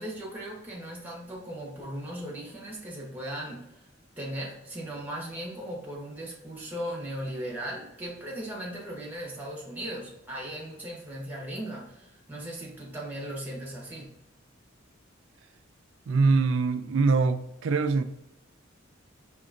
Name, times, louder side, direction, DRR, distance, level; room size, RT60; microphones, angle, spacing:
voice 1, 0.0-3.8 4.2-14.2, right 1 dB, 10° right, 1.2 m, -37 dB
voice 2, 16.1-18.0, right 4 dB, 75° right, 0.4 m, -23 dB
5.0 x 3.0 x 2.5 m
head